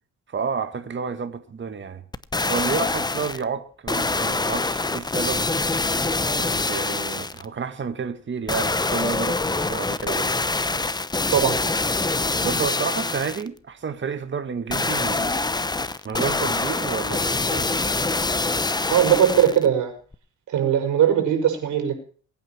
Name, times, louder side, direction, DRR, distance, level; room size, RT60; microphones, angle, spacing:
voice 1, 0.3-2.0 2.4-5.4 6.3-10.3 12.4-15.4 16.0-17.8, right 6 dB, 40° right, 1.9 m, -30 dB
sound 1, 2.1-3.4 3.9-7.5 8.5-13.5 14.7-19.7 20.1-20.2, left 3 dB, 15° left, 0.9 m, -25 dB
voice 2, 18.9-19.9 20.5-22.0, right 9 dB, 80° right, 5.8 m, -19 dB
23.0 x 9.1 x 4.5 m
cardioid pair, 90°, 30 cm